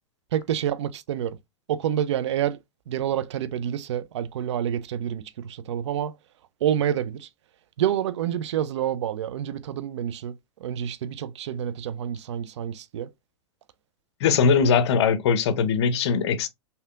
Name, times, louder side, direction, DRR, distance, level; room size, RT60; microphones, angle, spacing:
voice 1, 0.3-1.4 1.7-2.6 2.9-6.1 6.6-7.3 7.8-10.3 10.6-13.1, right 10 dB, 70° right, 0.4 m, -28 dB
voice 2, 14.2-16.5, left 6 dB, 65° left, 0.6 m, -21 dB
3.4 x 2.7 x 2.4 m
hypercardioid pair, 105°, 15 cm